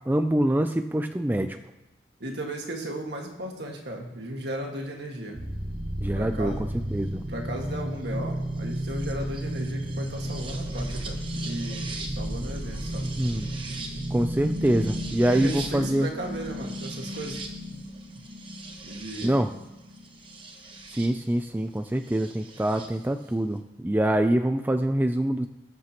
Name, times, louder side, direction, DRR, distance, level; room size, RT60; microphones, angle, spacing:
voice 1, 0.1-1.6 6.0-7.3 13.2-13.5 14.1-16.1 19.2-19.5 20.9-25.5, right 1 dB, 10° right, 7 dB, 0.3 m, -25 dB
voice 2, 2.2-5.4 6.2-6.6 7.3-13.1 15.3-17.8 18.7-19.5, right 1 dB, 65° right, 1 dB, 1.8 m, -35 dB
sound 1, 5.3-21.1 22.2-22.9, right 1 dB, 25° right, 1.1 m, -33 dB
19.0 x 7.5 x 3.0 m, 1.0 s
head